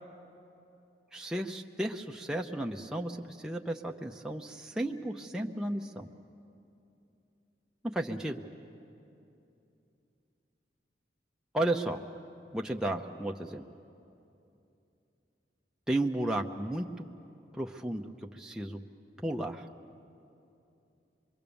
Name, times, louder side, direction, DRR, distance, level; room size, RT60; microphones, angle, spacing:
voice 1, 1.1-6.1 7.9-8.4 11.5-12.0 12.5-13.6 15.9-17.1 17.5-18.0 18.3-18.8 19.2-19.7, right 1 dB, 5° right, 1 dB, 0.6 m, -33 dB
25.5 x 23.0 x 7.0 m, 2.7 s
head